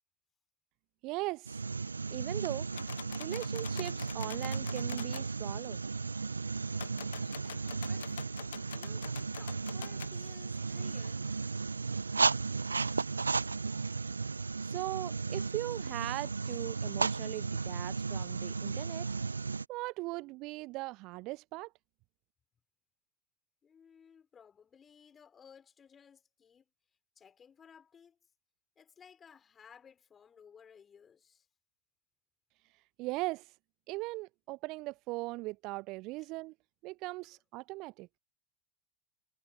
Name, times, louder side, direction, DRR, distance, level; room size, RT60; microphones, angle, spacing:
voice 1, 1.0-1.6 2.1-2.7 3.2-5.8 14.6-19.1 19.7-21.7 32.7-33.6 33.9-36.5 36.8-38.1, right 22 dB, 45° right, 0.4 m, -39 dB
sound 1, 1.5-19.6, right 4 dB, 80° right, 0.8 m, -35 dB
sound 2, 2.7-5.3 6.7-10.1, left 12 dB, 65° left, 0.4 m, -47 dB
voice 2, 7.4-8.1 8.7-11.3 23.6-26.7 27.2-28.2 28.8-31.5, left 7 dB, 25° left, 3.5 m, -58 dB
figure-of-eight pair, 80°, 0 cm